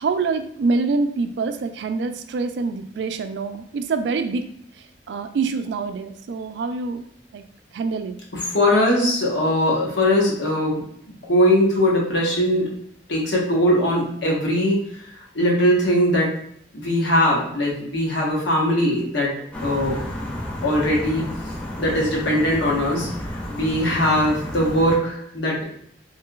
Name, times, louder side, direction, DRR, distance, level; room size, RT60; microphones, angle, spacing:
voice 1, 0.0-4.5 5.1-7.0 7.3-7.4 7.7-8.2, right 4 dB, 70° right, 9 dB, 0.3 m, -25 dB
voice 2, 8.3-10.8 11.3-12.7 13.1-14.8 15.3-16.3 16.7-19.3 19.6-20.0 20.6-21.3 21.8-25.6, equal, 90° left, -3 dB, 1.0 m, -20 dB
sound 1, 19.5-25.0, left 1 dB, 10° left, 0.6 m, -32 dB
3.2 x 2.8 x 2.3 m, 0.69 s
head